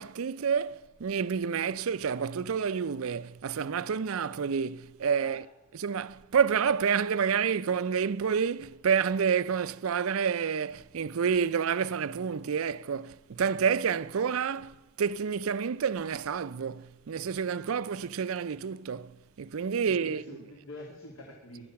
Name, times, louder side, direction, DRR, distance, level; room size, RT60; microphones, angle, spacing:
voice 1, 0.0-5.4 5.8-20.2, right 6 dB, 75° right, 0.5 m, -29 dB
voice 2, 19.9-21.6, left 1 dB, 75° left, 2.5 m, -46 dB
20.0 x 12.0 x 5.8 m
head